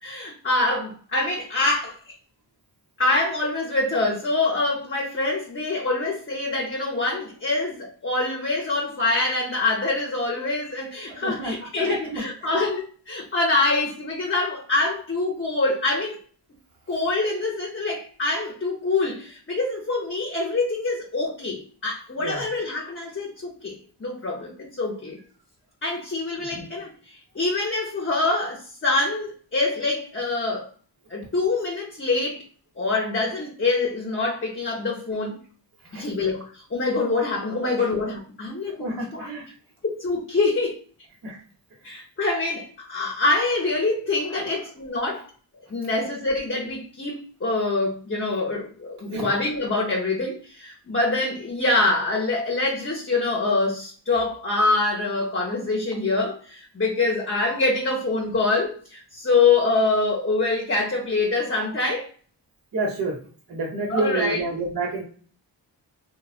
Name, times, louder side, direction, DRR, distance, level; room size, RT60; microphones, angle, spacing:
voice 1, 0.0-2.1 3.0-16.2 16.9-25.2 25.8-30.7 31.1-32.4 32.8-35.4 35.9-39.3 39.8-40.8 41.8-45.3 45.7-62.1 63.9-64.4, left 3 dB, 30° left, -2 dB, 0.7 m, -25 dB
voice 2, 11.1-11.5 11.8-12.2 12.5-12.6 22.2-22.4 26.5-26.6 35.9-36.0 37.6-37.9 38.7-39.5 41.2-41.4 44.3-44.4 49.1-49.3 62.7-63.2 63.5-65.0, right 2 dB, 50° right, -4 dB, 1.0 m, -29 dB
3.1 x 2.2 x 2.4 m, 0.43 s
cardioid pair, 50°, 44 cm